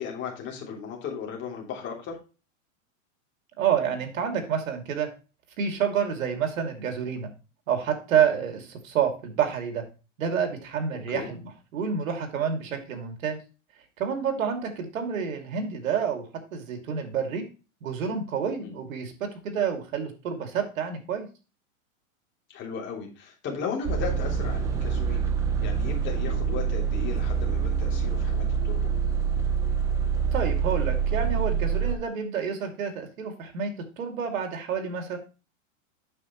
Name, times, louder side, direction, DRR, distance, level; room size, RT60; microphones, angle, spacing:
voice 1, 0.0-2.2 10.9-11.3 18.6-18.8 22.5-28.9, left 6 dB, 30° left, -1 dB, 3.1 m, -36 dB
voice 2, 3.6-5.1 5.6-7.3 7.7-9.9 10.2-13.4 14.0-17.4 17.8-21.3 30.3-35.2, right 7 dB, 80° right, 5 dB, 2.6 m, -28 dB
sound 1, 23.9-31.9, right 7 dB, 10° right, 0.3 m, -26 dB
8.6 x 6.8 x 3.1 m, 0.32 s
supercardioid pair, 145°, 40 cm